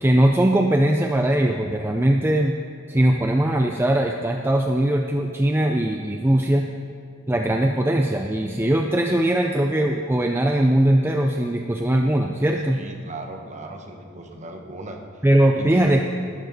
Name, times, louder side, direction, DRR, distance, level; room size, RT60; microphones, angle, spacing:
voice 1, 0.0-2.6 2.9-6.7 7.3-12.8 15.2-16.0, right 1 dB, 10° right, 3 dB, 0.5 m, -20 dB
voice 2, 12.8-15.0 15.6-15.9, right 2 dB, 35° right, 3 dB, 1.3 m, -37 dB
19.5 x 12.0 x 4.2 m, 2.3 s
head